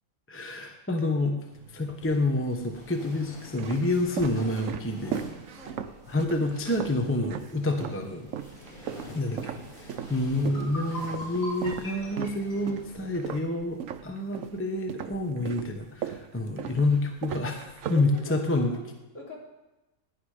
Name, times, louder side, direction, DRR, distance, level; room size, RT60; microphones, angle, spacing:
voice 1, 0.3-1.4 1.7-5.2 6.1-8.3 9.1-18.7, left 2 dB, 10° left, 3 dB, 1.0 m, -28 dB
sound 1, 1.5-2.2 2.9-8.1 8.3-14.6 14.9-18.6, right 9 dB, 70° right, 1.1 m, -37 dB
sound 2, 1.9-13.1, equal, 35° left, 4.6 m, -47 dB
sound 3, 10.4-13.5, equal, 70° left, 7.1 m, -40 dB
voice 2, 17.9-18.8 19.1-19.4, left 3 dB, 55° left, -4 dB, 4.1 m, -41 dB
16.5 x 10.5 x 5.0 m, 1.0 s
omnidirectional pair, 1.5 m